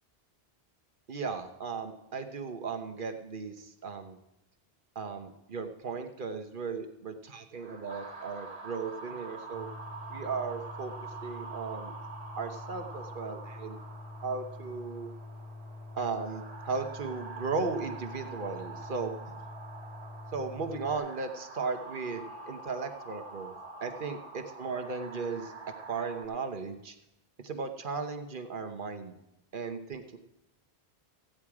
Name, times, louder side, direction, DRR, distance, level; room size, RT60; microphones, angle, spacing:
voice 1, 1.1-4.2 4.9-9.7 10.1-10.9 11.2-11.9 12.4-13.8 14.2-15.1 16.0-19.2 20.3-23.5 23.8-25.5 25.9-26.9 27.4-29.2 29.5-30.2, right 4 dB, 55° right, 7 dB, 1.1 m, -36 dB
sound 1, 7.5-26.2, right 4 dB, 35° right, 1.7 m, -46 dB
sound 2, 9.5-21.0, left 2 dB, 50° left, 1.4 m, -46 dB
15.0 x 8.9 x 4.8 m, 0.87 s
omnidirectional pair, 1.1 m